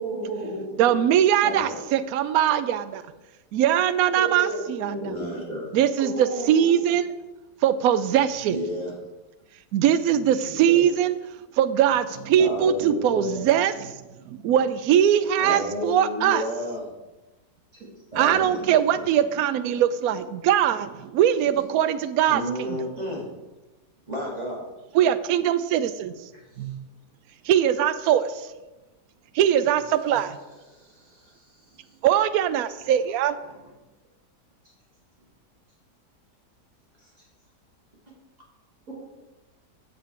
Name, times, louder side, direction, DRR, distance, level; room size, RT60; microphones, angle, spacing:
voice 1, 0.0-0.8 1.4-1.5 4.2-5.5 6.0-6.7 10.4-10.8 38.9-39.0, right 2 dB, 55° right, -6 dB, 2.5 m, -32 dB
voice 2, 0.8-3.0 3.5-5.1 5.7-7.1 7.6-8.6 9.7-11.2 11.6-13.9 14.3-16.4 18.2-22.8 24.9-26.1 26.6-26.8 27.5-28.5 29.3-30.4 32.0-33.4, right 10 dB, 70° right, 12 dB, 0.9 m, -21 dB
voice 3, 5.0-5.7 8.5-8.9 12.4-13.4 15.4-16.9 18.1-18.6 18.9-19.0 22.3-23.3 24.1-24.6 26.5-26.7 30.7-31.8 33.4-33.7, left 1 dB, 25° right, -4 dB, 2.2 m, -32 dB
7.9 x 7.5 x 4.4 m, 1.1 s
omnidirectional pair, 1.8 m